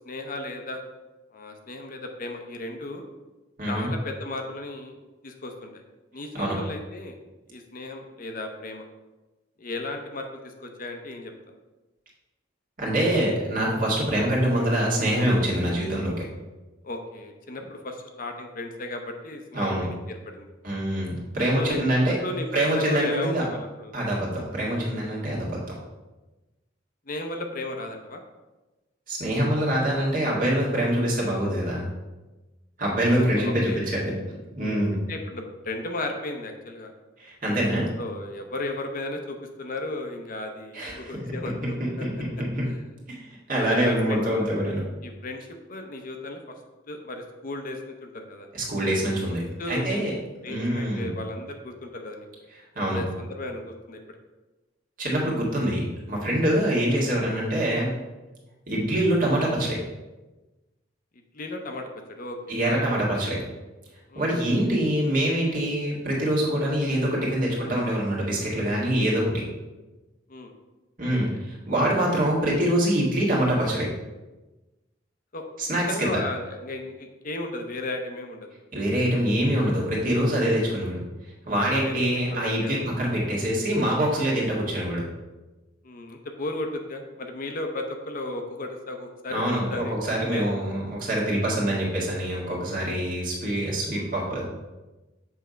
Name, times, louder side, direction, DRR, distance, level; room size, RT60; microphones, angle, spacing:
voice 1, 0.1-0.8 1.3-3.0 3.7-5.0 5.2-5.8 6.1-7.1 7.5-8.9 9.6-11.3 16.8-20.5 21.6-21.8 22.2-23.9 27.1-28.2 33.2-33.8 34.6-36.9 38.0-42.1 42.7-42.8 43.6-44.2 45.0-46.5 46.9-48.5 49.6-50.1 50.4-52.3 52.8-54.0 61.3-61.9 62.2-63.3 64.1-64.3 70.3-70.5 71.1-71.4 75.3-75.4 75.9-78.5 81.7-82.8 85.8-90.5 93.9-94.1, left 2 dB, 50° left, 4 dB, 0.7 m, -35 dB
voice 2, 3.6-3.9 6.3-6.6 12.8-16.2 19.5-19.8 20.6-22.2 22.5-23.4 23.9-25.6 29.1-31.8 32.8-34.1 34.6-35.0 37.2-37.9 40.7-41.3 41.8-42.7 43.1-43.2 43.5-44.8 48.5-49.4 49.7-50.1 50.5-51.1 52.8-53.0 55.0-57.9 58.7-59.8 62.5-63.4 64.2-69.4 71.0-73.9 75.6-76.2 78.7-81.0 81.5-85.0 89.3-94.4, right 1 dB, 50° right, -4 dB, 2.0 m, -25 dB
7.1 x 3.4 x 5.2 m, 1.1 s
head